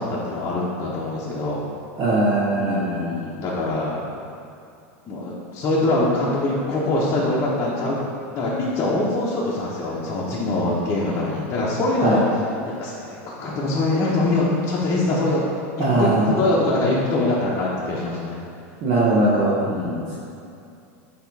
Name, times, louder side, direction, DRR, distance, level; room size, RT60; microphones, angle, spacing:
voice 1, 0.0-1.6 2.5-4.1 5.1-8.0 8.3-12.3 12.6-15.4 15.8-18.4 19.6-20.1, left 2 dB, 35° left, -7 dB, 1.0 m, -23 dB
voice 2, 2.0-3.0 12.0-12.2 15.8-16.3 18.8-19.5, right 2 dB, 45° right, -7 dB, 1.2 m, -20 dB
6.8 x 3.1 x 4.6 m, 2.5 s
supercardioid pair, 130°, 8 cm